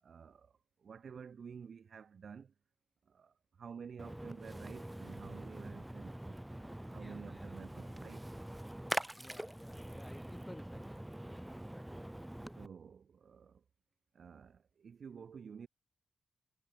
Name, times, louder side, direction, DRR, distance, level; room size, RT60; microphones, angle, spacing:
voice 1, 0.0-2.5 3.0-8.3 12.6-13.6 14.1-15.7, right 6 dB, 65° right, 0.8 m, -51 dB
Splash splatter, 4.0-12.7, right 1 dB, 10° right, 0.5 m, -44 dB
voice 2, 9.2-11.6, left 1 dB, 15° left, 5.3 m, -55 dB
cardioid pair, 65°, 0 cm